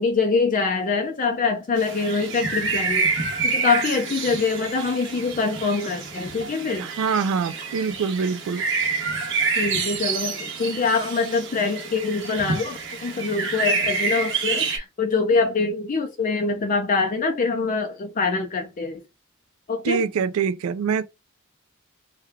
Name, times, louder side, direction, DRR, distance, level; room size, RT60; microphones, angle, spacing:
voice 1, 0.0-3.1 3.4-6.9 9.6-19.0 19.7-20.0, left 4 dB, 40° left, 0.4 m, -24 dB
sound 1, 1.8-14.8, right 4 dB, 60° right, 1.0 m, -28 dB
voice 2, 6.8-8.7 19.8-21.0, right 6 dB, 80° right, 0.3 m, -24 dB
3.2 x 2.2 x 3.4 m
head